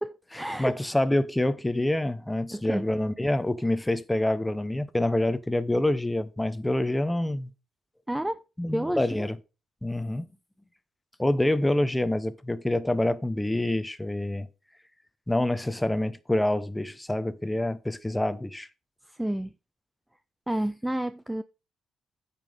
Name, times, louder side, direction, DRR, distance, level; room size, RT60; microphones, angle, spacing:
voice 1, 0.0-0.8 2.5-2.9 8.1-8.4 8.7-9.3 19.1-19.5 20.5-21.4, right 1 dB, 5° right, 0.5 m, -30 dB
voice 2, 0.6-7.5 8.6-9.4 9.8-10.3 11.2-14.5 15.3-18.7, left 1 dB, 10° left, 1.0 m, -26 dB
9.0 x 6.0 x 5.2 m
cardioid pair, 90°, 0 cm